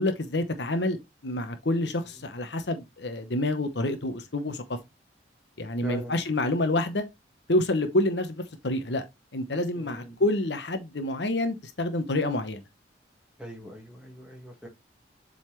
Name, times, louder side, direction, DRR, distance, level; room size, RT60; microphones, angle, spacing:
voice 1, 0.0-4.6 5.6-7.0 7.5-9.0 9.3-12.6, left 1 dB, 70° left, 1.0 m, -28 dB
voice 2, 5.8-6.1 9.7-10.2 13.4-14.7, right 1 dB, 5° right, 2.1 m, -41 dB
7.5 x 4.0 x 3.3 m
head